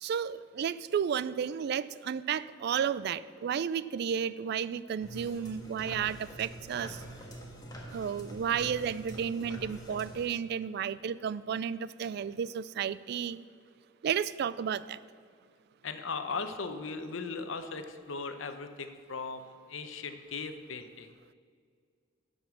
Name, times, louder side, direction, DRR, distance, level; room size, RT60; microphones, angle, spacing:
voice 1, 0.0-7.0 7.9-13.5 14.0-15.0, right 8 dB, 55° right, 17 dB, 0.3 m, -32 dB
sound 1, 5.0-10.3, right 1 dB, 20° left, 1.6 m, -45 dB
voice 2, 15.8-21.1, left 4 dB, 90° left, 8 dB, 0.8 m, -38 dB
11.5 x 5.3 x 6.3 m, 2.1 s
head